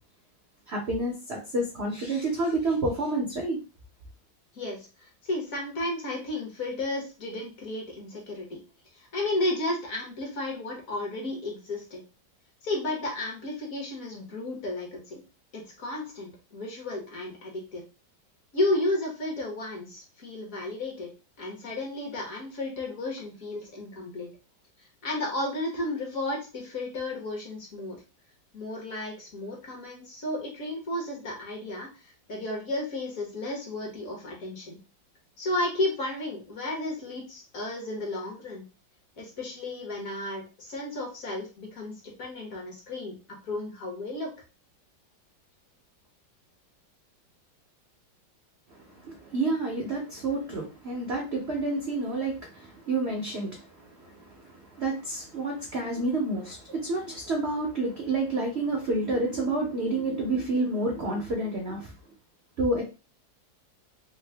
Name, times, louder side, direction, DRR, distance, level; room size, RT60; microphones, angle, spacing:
voice 1, 0.7-3.6 48.7-61.9 62.6-62.8, right 2 dB, 65° right, 0 dB, 0.6 m, -29 dB
voice 2, 4.5-8.6 8.9-12.0 12.6-15.2 15.5-17.8 18.5-21.1 21.4-24.3 25.0-28.0 28.5-34.8 35.4-38.7 39.2-44.3, left 2 dB, 55° left, 0 dB, 1.2 m, -33 dB
3.6 x 2.0 x 3.2 m, 0.32 s
omnidirectional pair, 2.0 m